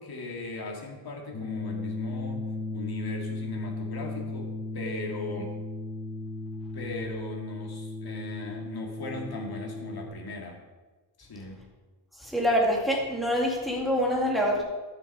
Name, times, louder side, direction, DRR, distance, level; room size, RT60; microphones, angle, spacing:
voice 1, 0.0-2.5 2.7-5.5 6.7-10.6 11.2-11.7, left 2 dB, 50° left, 0 dB, 2.0 m, -38 dB
sound 1, 1.3-10.1, left 2 dB, 25° left, 3.0 m, -36 dB
voice 2, 12.1-14.6, equal, ahead, -3 dB, 2.2 m, -25 dB
11.5 x 6.8 x 5.3 m, 1.3 s
wide cardioid pair, 160°, 47 cm